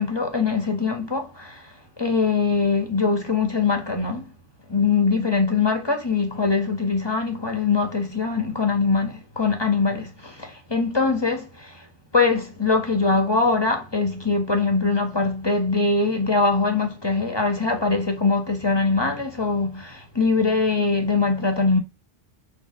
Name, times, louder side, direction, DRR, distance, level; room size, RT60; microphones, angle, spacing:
voice 1, 0.0-1.7 2.0-4.3 4.7-11.8 12.1-21.8, left 4 dB, 25° left, 1.6 m, -22 dB
5.9 x 4.1 x 5.8 m
omnidirectional pair, 1.1 m